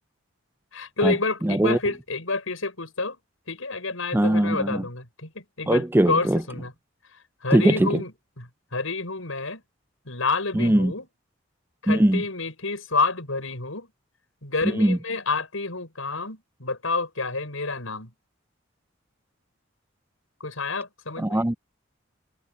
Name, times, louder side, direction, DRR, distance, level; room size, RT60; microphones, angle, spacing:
voice 1, 0.7-3.2 3.5-6.7 7.4-9.6 10.0-11.1 11.8-13.9 14.4-18.1 20.4-21.4, left 3 dB, 80° left, 6.2 m, -29 dB
voice 2, 1.4-1.8 4.1-4.8 5.7-6.4 7.5-8.0 10.5-10.9 11.9-12.2 14.6-15.0 21.2-21.5, right 1 dB, 10° right, 0.4 m, -20 dB
head